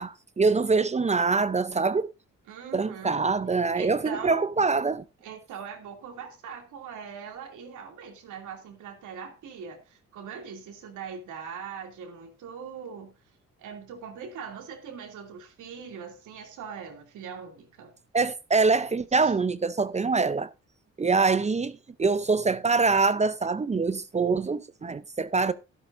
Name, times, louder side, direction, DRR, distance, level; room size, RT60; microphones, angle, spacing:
voice 1, 0.0-2.1 2.7-5.0 18.1-20.5 21.0-25.5, right 4 dB, 25° right, 0.6 m, -24 dB
voice 2, 2.5-3.2 3.7-4.5 5.2-13.1 13.6-17.9 19.2-19.3, right 6 dB, 80° right, 2.7 m, -41 dB
12.0 x 11.5 x 2.6 m
cardioid pair, 90°, 30 cm